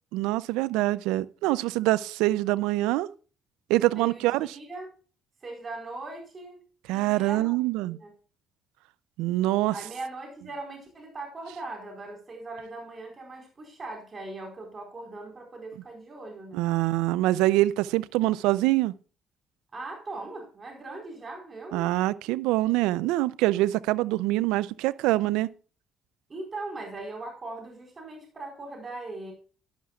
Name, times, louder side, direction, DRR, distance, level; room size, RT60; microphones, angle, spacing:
voice 1, 0.1-3.1 3.7-4.6 6.9-8.0 9.2-9.7 16.5-18.9 21.7-25.5, right 17 dB, 85° right, 0.4 m, -25 dB
voice 2, 3.8-4.9 5.4-6.6 6.9-7.6 7.9-8.1 9.7-16.6 19.7-21.9 26.3-29.3, right 2 dB, 40° right, 4.3 m, -40 dB
12.0 x 11.0 x 2.3 m
supercardioid pair, 60°, 0 cm